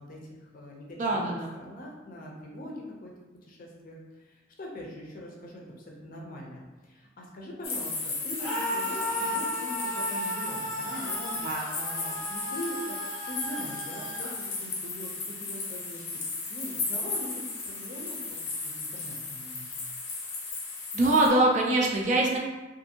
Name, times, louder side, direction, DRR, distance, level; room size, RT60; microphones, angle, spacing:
voice 1, 0.0-1.3 1.5-3.1 3.5-11.4 11.7-13.0 13.3-16.0 16.5-19.7, left 1 dB, 45° left, -2 dB, 0.5 m, -42 dB
voice 2, 1.0-1.5 11.4-11.7 20.9-22.4, right 2 dB, 40° right, -1 dB, 0.4 m, -23 dB
sound 1, 7.6-21.3, left 3 dB, 85° left, 0.7 m, -35 dB
Screaming, 8.4-14.3, equal, ahead, 0.8 m, -35 dB
2.5 x 2.5 x 2.7 m, 1.2 s
head